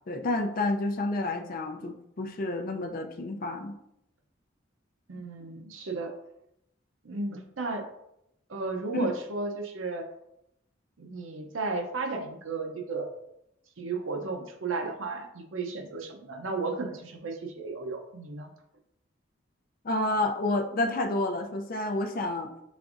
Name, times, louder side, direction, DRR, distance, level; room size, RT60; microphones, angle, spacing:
voice 1, 0.1-3.8 8.9-9.1 19.8-22.5, left 2 dB, 45° left, 5 dB, 0.5 m, -29 dB
voice 2, 5.1-6.1 7.0-7.9 8.5-10.1 11.0-13.1 13.8-18.5, right 3 dB, 90° right, 4 dB, 0.7 m, -34 dB
5.2 x 3.5 x 2.5 m, 0.80 s
head